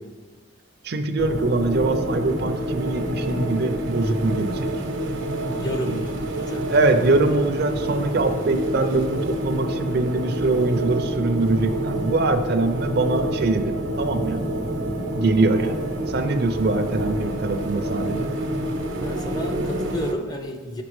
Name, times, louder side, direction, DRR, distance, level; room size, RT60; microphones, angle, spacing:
voice 1, 0.8-4.7 6.7-14.4 15.1-15.8 16.1-18.3, right 2 dB, 55° right, 8 dB, 0.5 m, -23 dB
sound 1, 1.2-20.1, right 1 dB, 80° right, 0.9 m, -27 dB
voice 2, 5.5-6.7 19.0-20.8, equal, 20° left, 4 dB, 0.4 m, -31 dB
6.0 x 5.7 x 3.1 m, 1.4 s
head